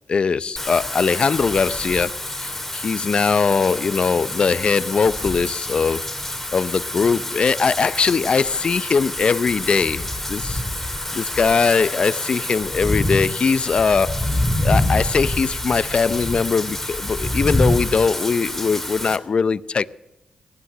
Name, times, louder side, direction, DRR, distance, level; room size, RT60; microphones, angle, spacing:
voice 1, 0.1-19.9, left 5 dB, 55° left, 0.5 m, -21 dB
Wind / Rain, 0.6-19.2, left 1 dB, 10° left, 2.8 m, -26 dB
18.0 x 11.5 x 6.6 m
cardioid pair, 65°, 2 cm